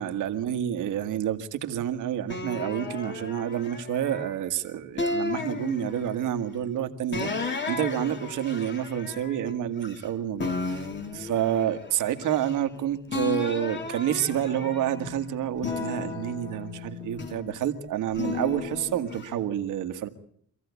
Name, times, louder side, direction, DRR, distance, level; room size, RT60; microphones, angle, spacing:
voice 1, 0.0-10.5 11.1-20.1, right 10 dB, 85° right, 8 dB, 1.7 m, -29 dB
sound 1, 2.3-4.4 5.0-6.3 7.1-10.1 10.4-12.8 13.1-15.1 15.6-17.6 18.1-19.3, left 3 dB, 35° left, 2.6 m, -34 dB
sound 2, 13.6-17.2, left 12 dB, 55° left, 1.7 m, -44 dB
25.5 x 15.0 x 8.2 m, 0.68 s
cardioid pair, 90°, 30 cm